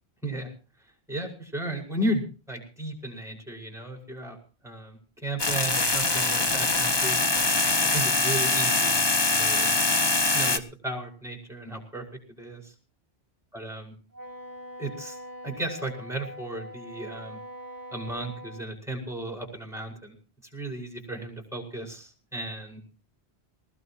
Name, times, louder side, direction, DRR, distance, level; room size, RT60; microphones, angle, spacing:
voice 1, 1.1-4.4 4.6-7.2 7.9-9.0 9.3-9.9 10.3-12.0 12.4-12.7 13.5-13.9 14.8-15.2 15.4-17.4 17.9-20.1 20.5-22.8, right 1 dB, ahead, 2 dB, 5.7 m, -34 dB
sound 1, 5.4-10.6, left 3 dB, 25° left, 1.0 m, -23 dB
Wind instrument woodwind instrument, 14.1-18.7, equal, 70° left, 5.2 m, -42 dB
20.5 x 20.0 x 2.9 m, 0.36 s
omnidirectional pair, 1.1 m